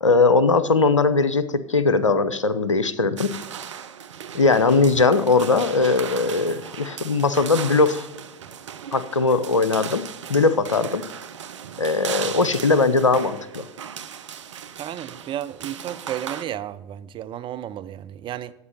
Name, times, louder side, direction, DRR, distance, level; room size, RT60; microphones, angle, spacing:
voice 1, 0.0-3.3 4.3-8.1 8.9-11.0 11.8-13.6, left 3 dB, 90° left, 0.6 m, -20 dB
sound 1, 3.2-16.4, right 8 dB, 75° right, 0.7 m, -37 dB
voice 2, 14.8-18.5, right 11 dB, 35° right, 0.6 m, -33 dB
9.5 x 8.1 x 5.5 m
figure-of-eight pair, 80°, 16 cm